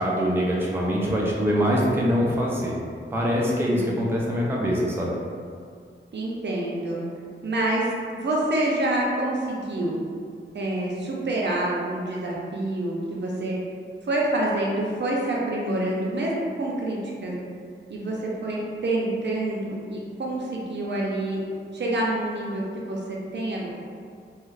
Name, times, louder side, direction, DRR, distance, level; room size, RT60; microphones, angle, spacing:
voice 1, 0.0-2.8 3.1-5.1, equal, 10° right, -4 dB, 0.4 m, -24 dB
voice 2, 3.4-4.1 6.1-7.0 7.4-10.0 10.5-13.6 14.0-16.3 16.6-17.3 17.9-21.4 21.7-23.7, right 1 dB, 60° right, -3 dB, 0.6 m, -27 dB
2.3 x 2.3 x 3.2 m, 2.1 s
wide cardioid pair, 85°, 20 cm